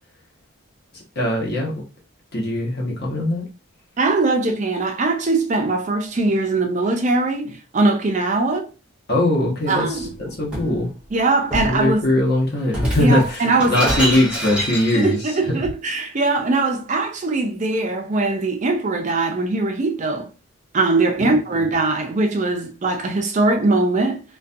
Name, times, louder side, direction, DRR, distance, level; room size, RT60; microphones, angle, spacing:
voice 1, 0.9-1.8 2.3-3.5 9.1-10.9 11.6-15.6 21.2-21.3, left 1 dB, 45° left, 0.9 m, -21 dB
voice 2, 4.0-8.7 9.7-10.1 11.1-12.0 13.0-14.1 14.9-20.3 20.7-24.2, right 3 dB, 35° right, 0.4 m, -21 dB
Shatter, 9.9-10.8 11.5-11.8 12.7-15.3, equal, 5° right, 0.9 m, -26 dB
2.4 x 2.2 x 2.6 m
head